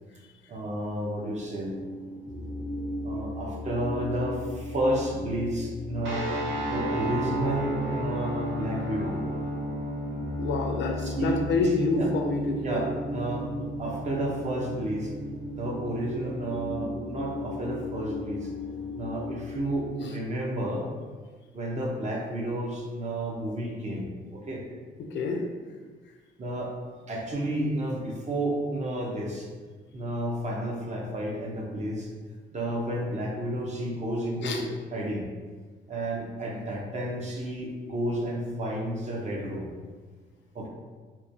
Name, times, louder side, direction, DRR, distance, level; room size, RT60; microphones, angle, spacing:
voice 1, 0.5-1.7 3.0-6.3 6.6-9.2 11.0-11.4 11.6-12.1 12.6-15.1 15.5-18.5 19.0-20.9 21.5-24.6 26.4-26.7 27.1-29.5 29.9-32.1 32.5-35.3 35.9-39.7 40.5-40.7, right 1 dB, 35° right, -2 dB, 0.6 m, -31 dB
sound 1, 1.4-19.9, left 1 dB, 5° left, 0.5 m, -36 dB
sound 2, 6.0-16.4, right 1 dB, 70° right, 0.7 m, -35 dB
voice 2, 10.4-12.8 25.0-25.5 34.4-34.6, left 4 dB, 65° left, 2 dB, 0.4 m, -28 dB
2.9 x 2.2 x 2.6 m, 1.5 s
cardioid pair, 90°, 20 cm